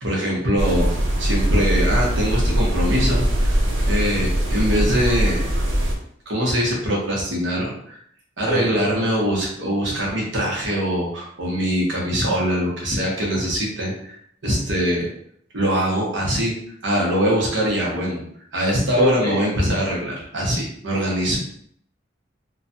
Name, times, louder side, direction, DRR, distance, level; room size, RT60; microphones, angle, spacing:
voice 1, 0.0-3.6 3.9-5.4 6.3-8.0 8.4-14.2 14.4-15.1 15.5-16.5 16.8-18.2 18.5-21.4, equal, 70° right, -3 dB, 1.0 m, -22 dB
sound 1, 0.6-5.9, equal, 90° right, 0.6 m, -21 dB
voice 2, 8.4-9.0 9.3-9.4 19.0-19.4, equal, 20° left, -2 dB, 0.6 m, -26 dB
3.1 x 2.3 x 2.7 m, 0.67 s
head